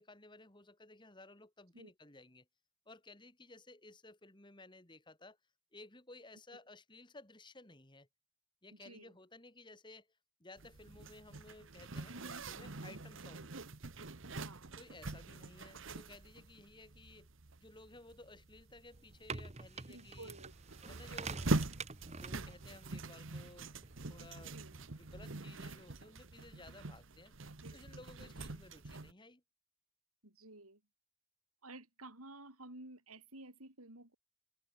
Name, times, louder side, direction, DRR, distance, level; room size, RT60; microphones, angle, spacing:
voice 1, 0.0-2.5 2.9-5.4 5.7-8.1 8.6-10.1 10.4-13.5 14.8-17.3 17.6-20.4 20.8-21.5 22.2-23.7 24.1-24.6 25.0-29.4, left 2 dB, 20° left, 2.6 m, -57 dB
voice 2, 8.7-9.1 12.1-12.5 14.4-14.7 19.9-20.5 24.5-24.7 27.6-27.8 30.2-30.8 31.6-34.1, right 2 dB, 85° right, 7.3 m, -53 dB
Zipper (clothing), 10.6-29.1, right 2 dB, 60° right, 1.3 m, -44 dB
sound 1, 18.9-25.1, right 4 dB, 30° right, 1.1 m, -48 dB
head